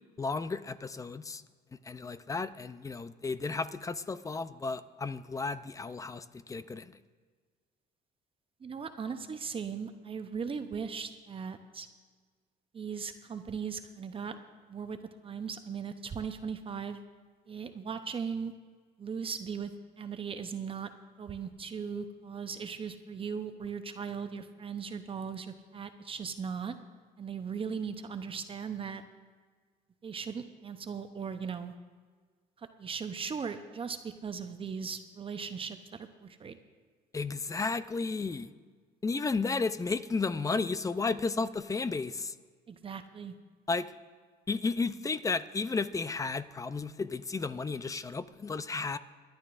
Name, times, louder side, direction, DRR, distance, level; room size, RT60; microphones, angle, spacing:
voice 1, 0.2-1.4 1.8-7.0 37.1-38.5 39.0-42.3 43.7-43.9 44.5-49.0, left 4 dB, 20° left, 14 dB, 0.5 m, -33 dB
voice 2, 8.6-11.9 12.7-14.4 14.7-15.0 15.2-17.0 17.5-18.5 19.0-19.7 20.0-20.9 21.2-26.8 27.2-29.0 30.0-31.7 32.6-36.6 42.7-43.3, right 6 dB, 35° right, 8 dB, 0.8 m, -38 dB
23.5 x 11.5 x 2.5 m, 1.5 s
cardioid pair, 110°, 17 cm